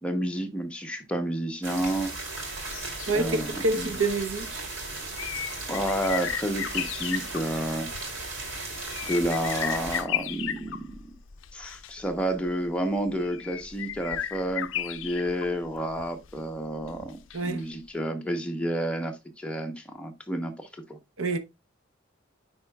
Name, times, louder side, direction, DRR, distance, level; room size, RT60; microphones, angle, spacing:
voice 1, 0.0-2.1 3.1-3.9 5.7-7.9 9.1-11.0 11.5-21.0, right 1 dB, 5° left, 0.8 m, -30 dB
sound 1, 1.6-10.0, right 2 dB, 70° right, 3.0 m, -36 dB
sound 2, 1.8-17.6 17.9-18.0, left 10 dB, 70° left, 0.4 m, -36 dB
voice 2, 3.1-4.7 17.3-17.7 21.2-21.4, right 2 dB, 90° right, 0.8 m, -27 dB
9.4 x 4.3 x 2.3 m
head